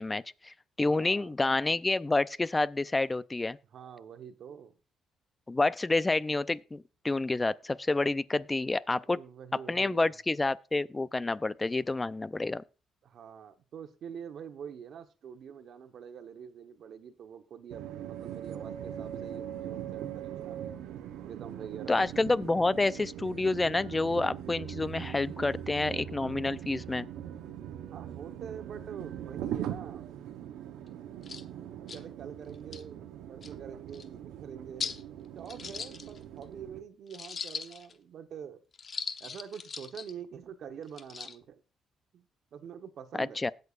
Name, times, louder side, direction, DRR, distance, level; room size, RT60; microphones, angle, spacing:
voice 1, 0.0-3.6 5.5-9.2 9.7-12.6 21.9-27.1 43.1-43.5, left 2 dB, 20° left, 0.5 m, -29 dB
voice 2, 0.8-1.3 3.7-4.7 9.1-10.2 13.0-20.6 21.2-22.1 27.9-30.0 31.9-38.6 39.2-41.6 42.1-42.2 42.5-43.4, right 8 dB, 65° right, 1.1 m, -45 dB
sound 1, 17.7-36.8, right 10 dB, 90° right, 0.9 m, -41 dB
sound 2, 30.9-31.0 31.2-31.4 31.9-32.0 32.5-32.8 33.4-33.5 33.9-34.0 34.8-35.0 35.5-36.4 37.1-37.9 38.7-40.1 40.9-41.4, left 5 dB, 45° left, 0.9 m, -39 dB
19.5 x 6.7 x 2.4 m
cardioid pair, 90°, 0 cm